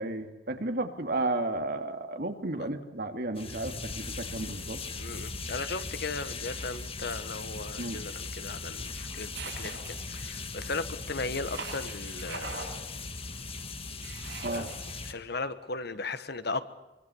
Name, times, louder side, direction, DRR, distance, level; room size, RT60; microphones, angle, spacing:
voice 1, 0.0-4.8 7.8-8.0 14.4-14.7, right 2 dB, 60° right, 6 dB, 2.5 m, -33 dB
sound 1, 3.3-15.1, left 4 dB, 35° left, 1.7 m, -39 dB
voice 2, 5.0-12.5 14.5-14.7 15.0-16.6, left 3 dB, 60° left, 12 dB, 1.4 m, -37 dB
sound 2, 9.3-10.3 11.4-12.7 14.0-15.0, right 4 dB, 75° right, 7.1 m, -41 dB
24.5 x 24.5 x 7.1 m, 1.1 s
head